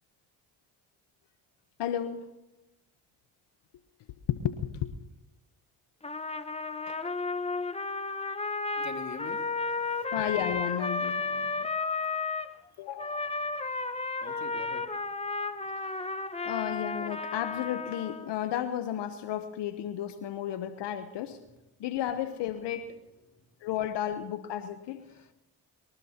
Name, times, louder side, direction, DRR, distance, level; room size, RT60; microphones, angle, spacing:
voice 1, 1.8-2.3 4.3-4.9 6.9-7.0 10.1-11.7 12.8-13.2 16.4-21.4 21.8-23.0 23.6-25.0, left 10 dB, 80° left, 9 dB, 1.0 m, -33 dB
Trumpet, 6.0-12.5 13.0-18.3, left 3 dB, 15° left, 1.1 m, -33 dB
voice 2, 8.7-10.1 14.2-14.9 25.1-25.3, left 5 dB, 40° left, 5 dB, 2.3 m, -44 dB
23.5 x 19.0 x 2.9 m, 0.95 s
supercardioid pair, 55°, 42 cm